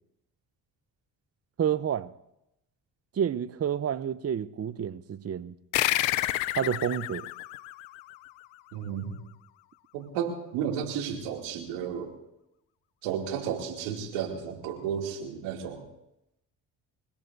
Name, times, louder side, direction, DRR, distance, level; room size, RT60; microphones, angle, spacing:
voice 1, 1.6-2.1 3.1-5.5 6.5-7.3, right 8 dB, 35° right, 0.7 m, -29 dB
sound 1, 5.7-8.7, left 16 dB, 80° left, 0.7 m, -30 dB
voice 2, 8.7-9.1 9.9-12.1 13.0-15.8, right 8 dB, 85° right, 2.8 m, -33 dB
28.0 x 16.5 x 2.7 m
hypercardioid pair, 55°, 44 cm